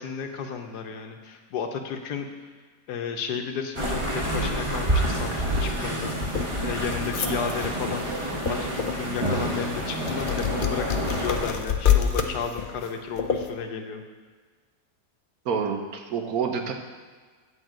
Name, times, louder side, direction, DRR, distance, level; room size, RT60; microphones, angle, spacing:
voice 1, 0.0-2.3 2.9-8.1 8.5-14.0, left 6 dB, 80° left, 5 dB, 1.4 m, -33 dB
sound 1, 3.7-11.5, right 1 dB, 20° right, 1.0 m, -28 dB
sound 2, 6.0-13.5, left 8 dB, 65° left, 0.5 m, -28 dB
voice 2, 15.4-16.7, right 6 dB, 65° right, 4 dB, 1.2 m, -28 dB
9.5 x 4.4 x 7.5 m, 1.5 s
omnidirectional pair, 1.7 m